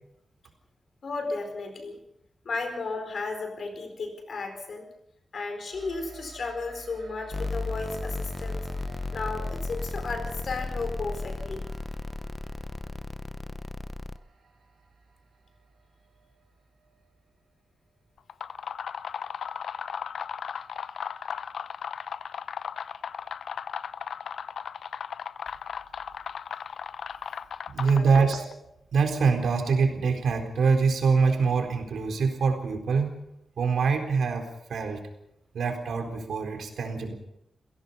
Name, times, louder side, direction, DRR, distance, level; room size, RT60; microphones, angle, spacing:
voice 1, 1.0-2.0 2.4-4.9 5.3-8.7 9.1-11.7 27.8-28.2, left 3 dB, 50° left, 6 dB, 4.5 m, -34 dB
sound 1, 5.7-17.5, right 4 dB, 65° right, 6.9 m, -52 dB
sound 2, 7.3-14.2, left 2 dB, 20° left, 0.7 m, -34 dB
sound 3, 18.2-28.5, left 7 dB, 85° left, 0.7 m, -36 dB
voice 2, 27.7-28.5 28.9-33.2 33.6-35.0 35.5-37.1, right 5 dB, 85° right, 4 dB, 4.0 m, -24 dB
28.0 x 17.0 x 5.6 m, 0.81 s
wide cardioid pair, 165°, 0 cm